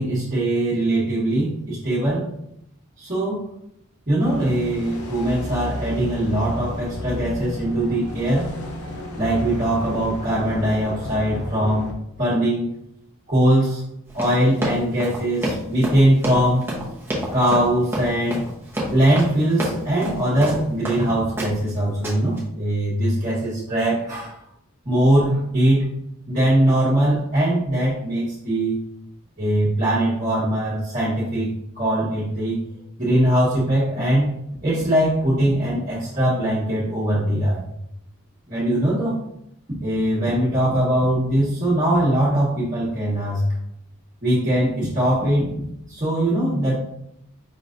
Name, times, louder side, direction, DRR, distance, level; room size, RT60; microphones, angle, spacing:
voice 1, 0.0-2.3 3.0-3.5 4.1-8.5 9.2-12.8 13.3-13.8 14.1-16.6 17.3-18.5 18.9-24.4 24.8-25.9 26.3-28.8 29.4-32.6 33.0-34.3 34.6-37.6 38.5-39.2 39.8-43.4 44.2-46.7, right 1 dB, 35° right, -11 dB, 1.2 m, -21 dB
sound 1, 4.2-11.9, left 1 dB, 85° left, 0.7 m, -33 dB
Run, 14.1-21.0 21.4-21.7 22.0-22.4, equal, 10° right, 0.8 m, -28 dB
5.3 x 3.1 x 2.5 m, 0.76 s
head